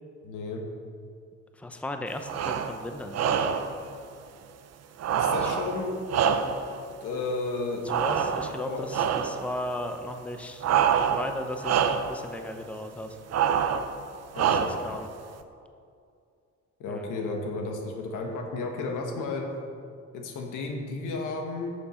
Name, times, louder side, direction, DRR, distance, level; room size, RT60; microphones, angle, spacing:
voice 1, 0.2-0.6 5.1-5.9 7.0-7.9 8.6-8.9 14.3-14.8 16.8-19.5 20.1-21.7, left 3 dB, 90° left, 2 dB, 1.5 m, -33 dB
voice 2, 1.5-3.6 5.4-5.5 7.9-10.6 11.0-13.2 14.5-15.1 16.9-17.1, left 1 dB, 5° left, 6 dB, 0.7 m, -36 dB
sound 1, 2.2-2.8 3.1-3.8 5.0-6.8 7.9-8.6 8.9-9.4 10.6-11.4 11.6-12.2 13.3-13.9 14.3-14.9, right 8 dB, 55° right, 0.7 m, -26 dB
11.0 x 6.9 x 4.4 m, 2.3 s
cardioid pair, 90°, 30 cm